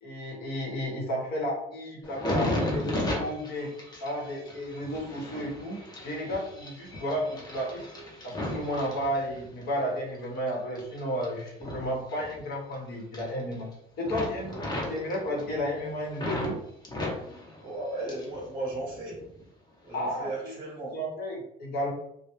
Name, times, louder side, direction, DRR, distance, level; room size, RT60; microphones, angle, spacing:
voice 1, 0.0-3.7 4.0-7.8 8.2-13.7 14.0-16.6 19.9-20.5 20.9-21.9, equal, 75° left, -2 dB, 0.9 m, -33 dB
sound 1, 2.0-9.7 10.1-12.7 13.0-13.7 14.0-16.5 16.8-18.4 18.7-19.4 20.0-20.2, left 1 dB, 25° left, 0.7 m, -35 dB
voice 2, 17.6-19.2 19.8-21.0, right 2 dB, 25° right, -3 dB, 0.8 m, -35 dB
2.2 x 2.1 x 2.9 m, 0.76 s
cardioid pair, 110°, 17 cm